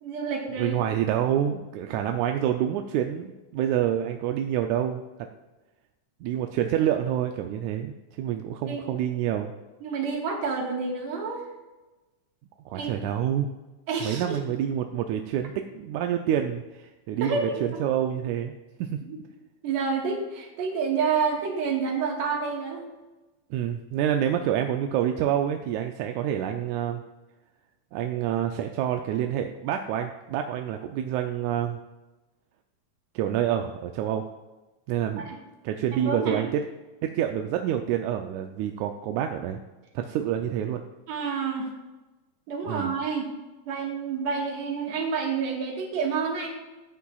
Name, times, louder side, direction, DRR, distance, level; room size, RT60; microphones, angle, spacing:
voice 1, 0.0-0.7 8.6-8.9 9.8-11.4 12.7-12.9 13.9-14.4 17.2-17.8 19.0-19.2 19.6-22.9 35.2-35.4 35.9-36.5 41.1-41.7 42.5-43.3 43.7-46.5, right 5 dB, 70° right, 0 dB, 2.7 m, -29 dB
voice 2, 0.6-5.0 6.2-9.5 12.7-13.5 14.0-18.5 18.8-19.0 23.5-27.0 27.9-31.8 33.2-34.3 34.9-35.3 35.6-36.6 37.0-39.6 40.0-40.8 42.6-42.9, right 10 dB, 85° right, 5 dB, 2.0 m, -27 dB
14.0 x 8.4 x 2.3 m, 1.1 s
omnidirectional pair, 3.3 m